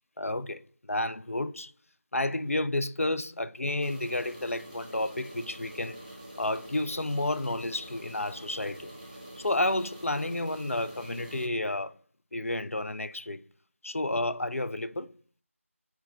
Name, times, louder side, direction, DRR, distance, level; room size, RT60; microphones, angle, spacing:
voice 1, 0.2-0.6 0.9-1.7 2.1-6.0 6.4-8.9 9.4-11.9 12.3-13.4 13.8-15.1, left 1 dB, 75° left, 0.5 m, -31 dB
sound 1, 3.8-11.5, right 1 dB, 5° left, 0.7 m, -46 dB
4.5 x 4.5 x 5.4 m
figure-of-eight pair, 175°, 8 cm